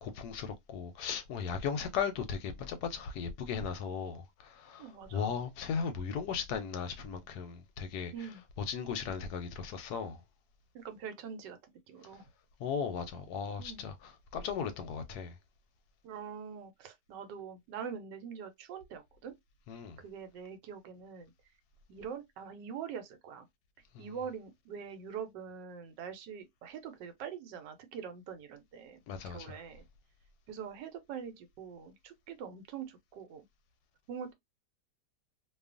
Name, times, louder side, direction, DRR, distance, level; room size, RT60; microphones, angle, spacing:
voice 1, 0.0-8.3 8.6-10.2 12.6-15.4 19.7-20.0 23.9-24.1 29.1-29.6, left 6 dB, 75° left, 1.0 m, -37 dB
voice 2, 4.8-5.3 8.1-8.4 10.7-11.6 11.9-12.3 13.6-13.8 16.0-19.3 20.0-21.3 21.9-23.5 24.0-29.8 30.5-33.4 34.1-34.3, right 7 dB, 90° right, 1.3 m, -44 dB
2.7 x 2.3 x 2.4 m
omnidirectional pair, 1.8 m